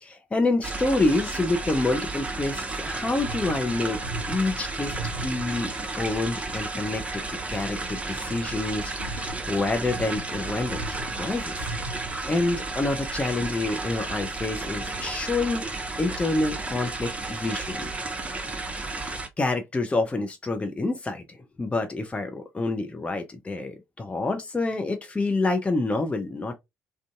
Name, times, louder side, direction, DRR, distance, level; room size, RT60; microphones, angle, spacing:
voice 1, 0.0-7.2 7.5-11.7 12.2-15.7 16.0-17.9 18.9-26.6, left 2 dB, 15° left, 0.4 m, -28 dB
sound 1, 0.6-19.3, right 3 dB, 15° right, 0.7 m, -33 dB
sound 2, 3.0-5.7 8.2-12.4 13.0-13.1 14.9-15.1, right 1 dB, 90° right, 0.3 m, -39 dB
2.5 x 2.3 x 2.4 m
figure-of-eight pair, 45°, 7 cm